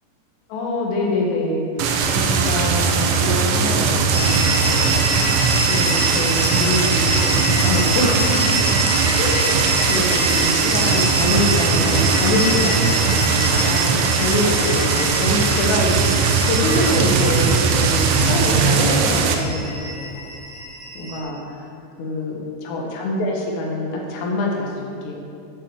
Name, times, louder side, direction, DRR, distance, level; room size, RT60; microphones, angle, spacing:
voice 1, 0.5-5.2 5.6-8.6 9.2-20.2 21.0-21.7 22.0-22.4 22.7-25.1, left 2 dB, 75° left, -1 dB, 3.7 m, -25 dB
sound 1, 1.8-19.4, right 5 dB, 90° right, 2.6 m, -19 dB
sound 2, 4.1-21.2, right 1 dB, 30° right, 1.6 m, -26 dB
8.7 x 6.5 x 7.6 m, 2.7 s
omnidirectional pair, 5.9 m